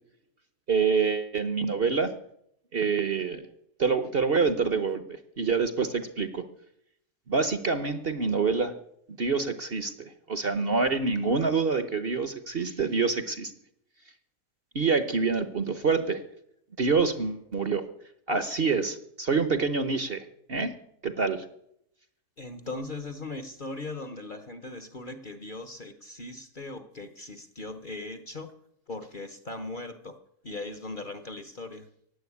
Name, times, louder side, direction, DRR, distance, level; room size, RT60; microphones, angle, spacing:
voice 1, 0.7-2.1 2.7-3.5 3.8-6.5 7.3-8.7 9.2-13.5 14.7-16.2 16.8-17.8 18.3-20.2 20.5-20.7 21.0-21.4, right 4 dB, 40° right, 11 dB, 1.0 m, -26 dB
voice 2, 22.4-28.5 28.9-30.2 30.4-31.9, left 2 dB, 35° left, 10 dB, 1.0 m, -39 dB
16.0 x 10.0 x 8.5 m, 0.75 s
omnidirectional pair, 1.7 m